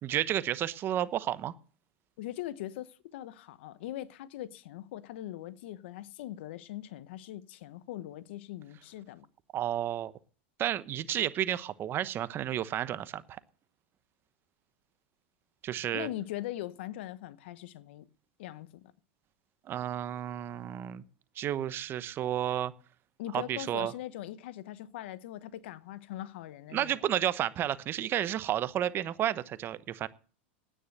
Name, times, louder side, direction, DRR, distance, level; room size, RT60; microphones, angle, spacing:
voice 1, 0.0-1.5 9.5-10.1 10.6-13.4 15.6-16.1 19.7-21.0 21.4-22.7 23.3-23.9 26.7-30.1, right 11 dB, 35° right, 0.9 m, -31 dB
voice 2, 2.2-9.3 15.9-18.1 18.4-18.9 23.2-27.0, left 13 dB, 70° left, 1.0 m, -41 dB
10.0 x 9.6 x 7.8 m
hypercardioid pair, 115°, 6 cm